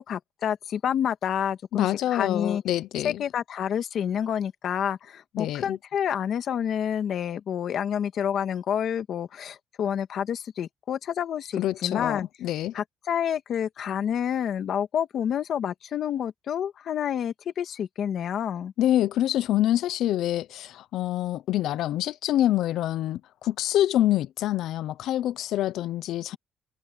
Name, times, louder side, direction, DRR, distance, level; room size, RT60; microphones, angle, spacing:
voice 1, 0.0-2.6 3.0-12.3 12.7-18.7, left 9 dB, 55° left, 1.9 m, -28 dB
voice 2, 1.7-3.2 5.3-5.8 11.6-12.7 18.8-26.4, left 13 dB, 80° left, 0.7 m, -26 dB
cardioid pair, 160°, 0 cm